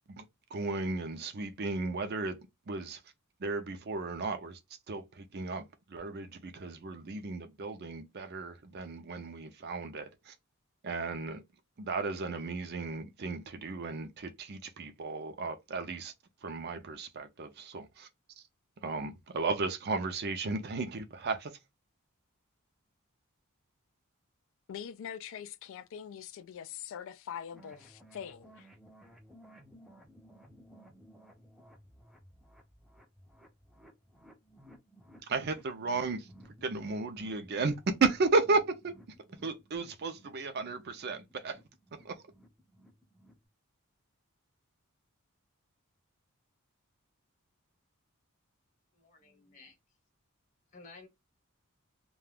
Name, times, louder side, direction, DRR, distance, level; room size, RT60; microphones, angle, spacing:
voice 1, 0.5-2.4 2.7-3.0 3.4-4.6 4.9-10.4 10.8-11.4 11.8-16.1 16.4-18.1 18.4-18.5 18.8-21.5 35.2-36.3 36.6-39.1 39.4-41.6 42.0-42.1, right 3 dB, 50° right, 0.5 m, -34 dB
voice 2, 24.7-28.7, left 8 dB, 60° left, 0.3 m, -43 dB
sound 1, 27.5-43.5, equal, ahead, 0.5 m, -57 dB
voice 3, 48.9-49.8 50.7-51.1, left 3 dB, 35° left, 0.9 m, -53 dB
2.4 x 2.3 x 3.3 m
head